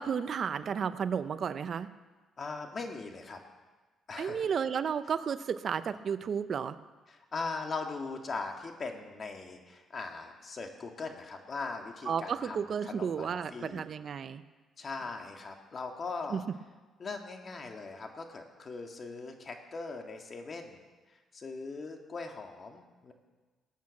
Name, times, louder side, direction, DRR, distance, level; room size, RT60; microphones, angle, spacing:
voice 1, 0.0-1.9 4.2-6.8 12.1-14.4 16.3-16.4, right 7 dB, 50° right, 13 dB, 0.6 m, -32 dB
voice 2, 2.4-3.4 4.1-4.5 7.1-12.6 12.8-13.8 14.8-16.4 17.0-20.8 21.3-23.1, left 4 dB, 40° left, 3 dB, 2.1 m, -40 dB
19.0 x 8.6 x 7.3 m, 1.3 s
cardioid pair, 100°, 0 cm